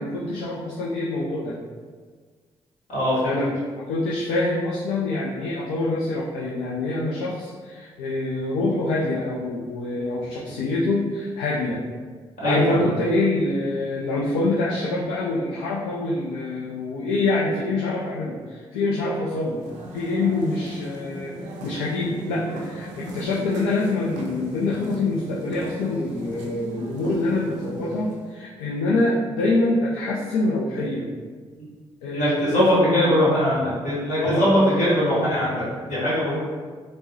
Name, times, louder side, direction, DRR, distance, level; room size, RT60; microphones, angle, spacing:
voice 1, 0.0-1.6 3.2-11.8 12.4-19.7 19.9-21.3 21.6-31.1 32.0-33.3 34.2-34.8, left 2 dB, 85° left, -5 dB, 0.4 m, -25 dB
voice 2, 2.9-3.4 12.4-12.8 32.1-36.4, equal, 65° left, -8 dB, 1.4 m, -21 dB
sound 1, 19.5-28.4, right 1 dB, 75° right, 0.4 m, -37 dB
3.3 x 2.0 x 2.7 m, 1.5 s
hypercardioid pair, 45°, 13 cm